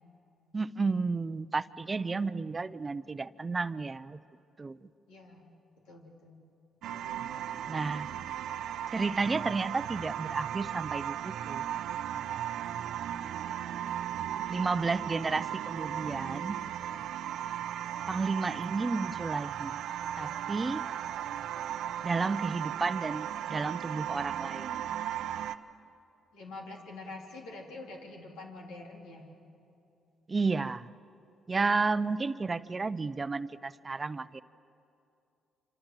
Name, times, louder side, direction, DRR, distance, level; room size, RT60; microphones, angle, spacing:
voice 1, 0.5-4.2 4.6-4.8 7.7-8.1 8.9-11.6 14.5-16.6 18.1-19.8 20.2-20.9 22.0-24.8 30.3-30.9 31.5-34.4, right 4 dB, 30° right, 14 dB, 0.7 m, -32 dB
voice 2, 5.1-5.5 5.9-6.4 26.3-29.3, left 2 dB, 90° left, 0 dB, 3.5 m, -45 dB
sound 1, 6.8-25.6, right 10 dB, 75° right, 0.7 m, -36 dB
27.0 x 26.0 x 7.7 m, 2.7 s
supercardioid pair, 65°, 0 cm